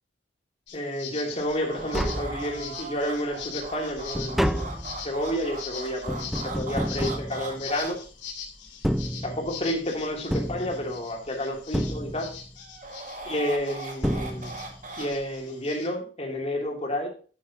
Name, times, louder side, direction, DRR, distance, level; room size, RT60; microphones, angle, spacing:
sound 1, 0.7-15.9, left 7 dB, 70° left, 2.7 m, -42 dB
voice 1, 0.7-4.7 5.0-8.0 9.2-12.3 13.2-14.5 15.0-17.1, equal, 35° left, 0 dB, 3.1 m, -30 dB
sound 2, 1.4-7.9 12.6-15.1, right 3 dB, 45° right, 2.0 m, -39 dB
Tap, 1.5-1.6 1.8-2.9 3.3-8.1 8.7-9.8 10.3-11.3 11.7-12.6 13.6-13.7 14.0-14.9 15.1-15.2, equal, ahead, 0.4 m, -30 dB
11.0 x 9.3 x 2.9 m, 0.38 s
head